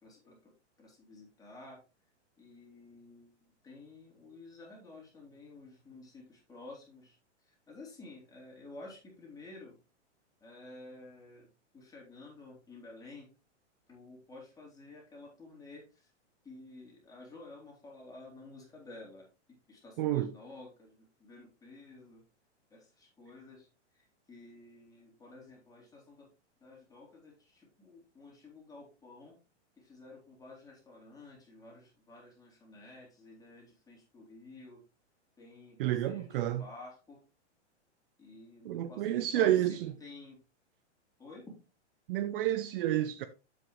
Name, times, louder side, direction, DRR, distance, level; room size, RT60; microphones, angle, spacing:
voice 1, 0.0-1.8 2.4-3.3 3.6-9.8 10.4-11.5 11.7-13.3 13.9-16.1 16.4-22.2 22.7-26.3 26.6-29.4 29.8-34.8 35.4-37.2 38.2-40.4 41.2-41.6, left 2 dB, 10° left, 3.5 m, -52 dB
voice 2, 20.0-20.3 35.8-36.6 38.7-39.9 42.1-43.3, right 13 dB, 50° right, 0.7 m, -30 dB
7.8 x 7.5 x 3.1 m
hypercardioid pair, 135°, 35 cm